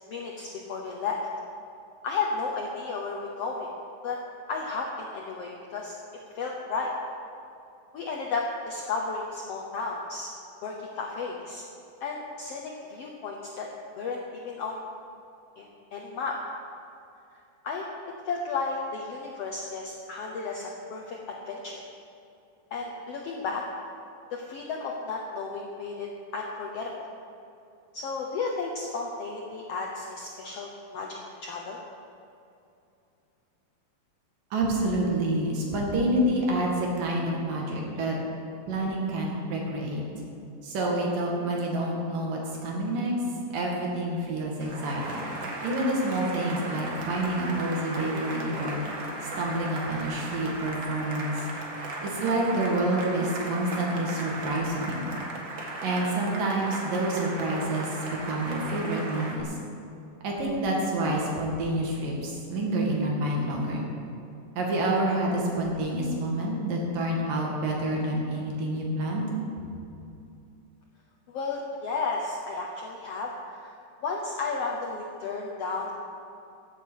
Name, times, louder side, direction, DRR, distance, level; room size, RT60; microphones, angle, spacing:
voice 1, 0.1-1.2 2.0-3.7 4.0-4.2 4.5-6.0 6.3-6.9 7.9-10.3 10.6-11.6 12.0-13.7 14.0-14.8 15.6-16.4 17.6-17.8 18.2-21.8 22.7-23.6 24.3-27.1 27.9-31.8 71.3-73.7 74.0-75.9, left 4 dB, 70° left, 0 dB, 1.5 m, -33 dB
voice 2, 34.5-38.2 38.7-40.0 40.6-43.1 43.5-45.3 45.6-48.8 49.4-51.4 52.0-55.0 55.8-59.5 60.2-63.8 64.6-69.3, right 1 dB, 75° right, -2 dB, 3.8 m, -28 dB
Cheering / Applause, 44.6-59.4, right 2 dB, 45° right, 1.7 m, -36 dB
15.5 x 8.0 x 6.4 m, 2.7 s
omnidirectional pair, 4.0 m